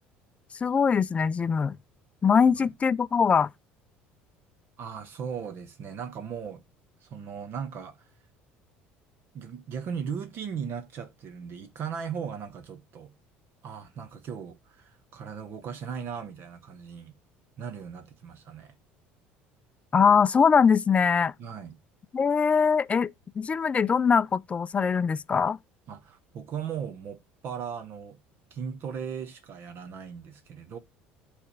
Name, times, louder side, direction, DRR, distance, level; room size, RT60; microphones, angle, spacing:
voice 1, 0.6-1.8 2.2-3.5 19.9-21.3 22.1-25.6, left 6 dB, 30° left, 0.4 m, -22 dB
voice 2, 4.8-6.6 7.0-8.1 9.3-13.1 13.6-17.1 17.6-18.7 21.4-21.7 25.9-28.2 28.5-30.8, right 7 dB, 55° right, 1.1 m, -37 dB
8.3 x 3.5 x 6.6 m
supercardioid pair, 90°, 5 cm